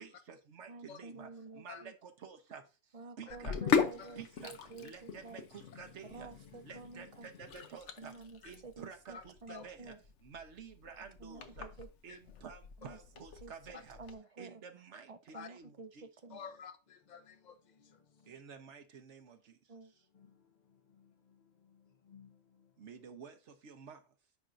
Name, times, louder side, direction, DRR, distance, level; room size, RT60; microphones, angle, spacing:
voice 1, 0.0-1.3 1.5-2.6 3.2-3.6 4.2-8.1 8.4-9.9 10.2-11.7 12.0-14.0 14.4-16.1 18.3-19.6 22.8-24.0, right 6 dB, 80° right, 1.3 m, -51 dB
voice 2, 0.7-1.9 2.9-5.4 6.1-7.3 8.0-10.0 11.2-11.9 12.8-13.0 13.4-13.5 14.0-14.6 15.1-15.9 16.2-16.4 19.7-19.9, right 3 dB, 40° right, 0.6 m, -50 dB
Sink (filling or washing), 3.3-14.1, left 6 dB, 80° left, 1.1 m, -39 dB
voice 3, 9.1-9.7 12.1-12.2 13.7-13.8 15.3-15.5 16.3-18.4 20.1-22.8, left 6 dB, 45° left, 0.8 m, -53 dB
10.0 x 4.5 x 2.6 m
omnidirectional pair, 1.2 m